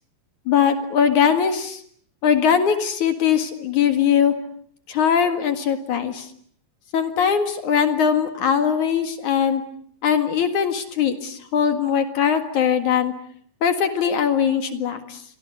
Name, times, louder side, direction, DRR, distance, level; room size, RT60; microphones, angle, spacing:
voice 1, 0.5-1.8 2.2-4.3 4.9-6.3 6.9-9.6 10.0-13.1 13.6-15.2, left 7 dB, 55° left, 8 dB, 3.0 m, -20 dB
28.0 x 24.0 x 8.3 m, 0.62 s
omnidirectional pair, 4.5 m